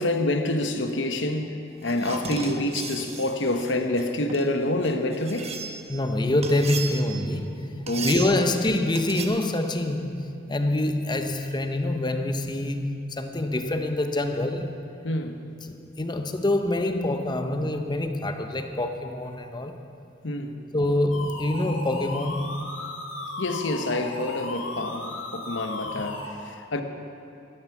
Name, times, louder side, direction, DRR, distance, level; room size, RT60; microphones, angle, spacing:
voice 1, 0.0-5.6 7.9-8.2 15.0-15.4 20.2-20.6 23.4-26.8, left 1 dB, 70° left, 1.0 m, -27 dB
sound 1, 1.8-5.9 6.4-7.3 7.9-8.5 8.9-9.3, right 5 dB, 35° right, 1.0 m, -36 dB
voice 2, 5.9-14.8 15.6-19.8 20.7-22.7 26.0-26.2, left 1 dB, 25° left, 0.8 m, -26 dB
sound 2, 21.1-26.3, left 2 dB, 85° left, 1.9 m, -36 dB
12.5 x 11.0 x 7.1 m
head